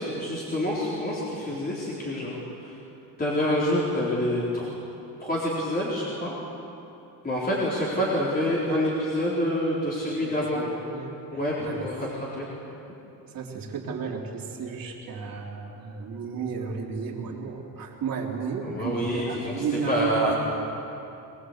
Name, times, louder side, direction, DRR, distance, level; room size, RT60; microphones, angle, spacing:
voice 1, 0.0-2.4 2.6-2.7 3.2-4.7 5.2-6.3 7.2-10.6 11.3-12.5 18.6-20.4, equal, 20° left, -6 dB, 4.2 m, -27 dB
voice 2, 10.2-11.9 13.3-20.4, right 5 dB, 55° right, -1 dB, 3.8 m, -33 dB
22.5 x 21.5 x 8.3 m, 2.8 s
cardioid pair, 125°, 41 cm